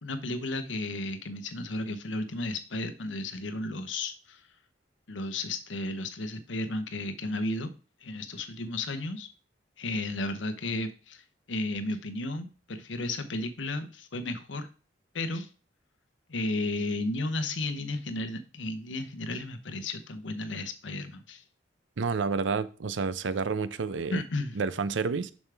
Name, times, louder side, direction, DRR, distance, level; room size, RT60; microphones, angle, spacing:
voice 1, 0.0-4.4 5.1-7.7 8.0-9.3 9.8-14.7 15.1-15.5 16.3-21.4 24.1-24.6, left 2 dB, 85° left, 9 dB, 0.9 m, -33 dB
voice 2, 22.0-24.2 24.5-25.3, right 4 dB, 80° right, 15 dB, 0.6 m, -29 dB
7.1 x 6.3 x 3.4 m, 0.36 s
head